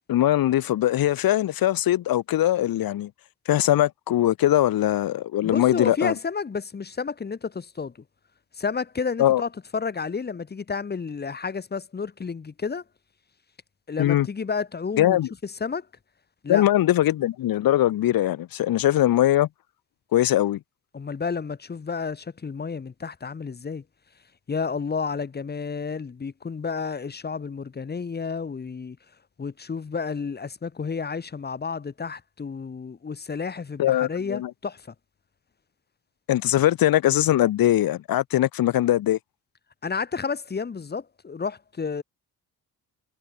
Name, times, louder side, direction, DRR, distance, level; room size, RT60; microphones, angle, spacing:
voice 1, 0.1-3.1 3.5-6.1 9.2-9.4 14.0-14.3 15.0-15.3 16.5-19.5 20.1-20.6 33.8-34.5 36.3-39.2, left 13 dB, 60° left, 1.3 m, -21 dB
voice 2, 5.4-7.9 8.5-12.8 13.9-15.2 15.4-15.9 16.4-16.7 20.9-23.8 24.5-29.0 29.4-34.9 39.8-42.0, left 5 dB, 25° left, 2.8 m, -31 dB
cardioid pair, 175°, 39 cm